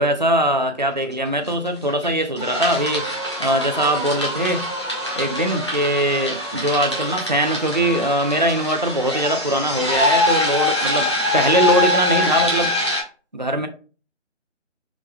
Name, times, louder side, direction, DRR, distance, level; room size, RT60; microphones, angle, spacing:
voice 1, 0.0-3.1 3.4-4.7 5.2-12.7 13.3-13.7, right 1 dB, 40° right, 0.4 m, -21 dB
sound 1, 0.9-1.0 1.3-2.1 2.4-13.0, left 1 dB, 25° left, 0.7 m, -23 dB
4.8 x 3.0 x 2.2 m
figure-of-eight pair, 160°, 37 cm